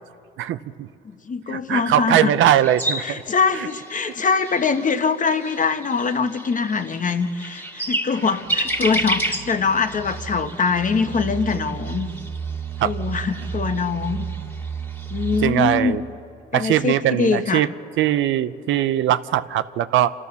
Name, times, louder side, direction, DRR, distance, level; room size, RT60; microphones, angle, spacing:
voice 1, 0.4-0.9 1.5-3.2 3.5-3.7 12.8-12.9 15.4-16.0 16.5-17.7 18.0-20.1, right 12 dB, 80° right, 13 dB, 0.7 m, -20 dB
voice 2, 1.3-2.3 3.0-12.1 12.8-14.3 15.1-16.0 16.5-17.7, left 5 dB, 40° left, 8 dB, 1.2 m, -23 dB
sound 1, 2.4-15.4, right 1 dB, 10° left, 2.0 m, -32 dB
sound 2, 8.3-16.1, right 7 dB, 60° right, 1.2 m, -33 dB
27.5 x 13.5 x 6.9 m, 2.8 s
cardioid pair, 90°, 20 cm